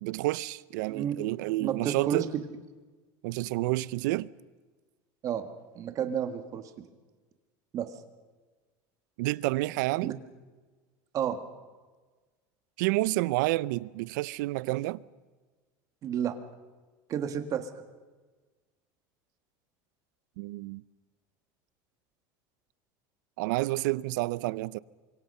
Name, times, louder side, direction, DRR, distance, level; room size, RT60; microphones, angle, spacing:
voice 1, 0.0-2.3 3.2-4.3 9.2-10.2 12.8-15.0 20.4-20.8 23.4-24.8, right 19 dB, 85° right, 0.6 m, -29 dB
voice 2, 1.6-2.3 5.2-5.5 5.8-6.6 7.7-7.9 10.0-10.1 11.1-11.4 16.0-16.4 17.1-17.7, right 9 dB, 35° right, 1.8 m, -31 dB
28.5 x 24.5 x 5.6 m
cardioid pair, 160°, 10 cm